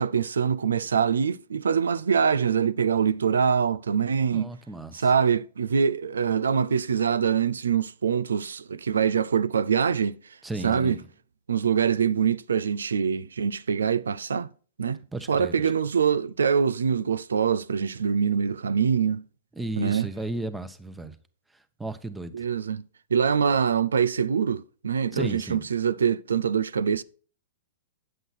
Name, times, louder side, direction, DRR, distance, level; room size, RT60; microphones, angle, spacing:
voice 1, 0.0-4.5 4.9-10.2 10.6-11.0 11.5-14.5 14.8-19.2 19.8-20.1 22.3-22.8 23.1-27.0, right 7 dB, 80° right, 0.5 m, -24 dB
voice 2, 4.3-5.1 10.4-11.0 15.1-15.5 19.5-21.1 21.8-22.4 25.1-25.6, right 2 dB, 10° right, 1.1 m, -34 dB
9.3 x 7.8 x 4.3 m
hypercardioid pair, 110°, 0 cm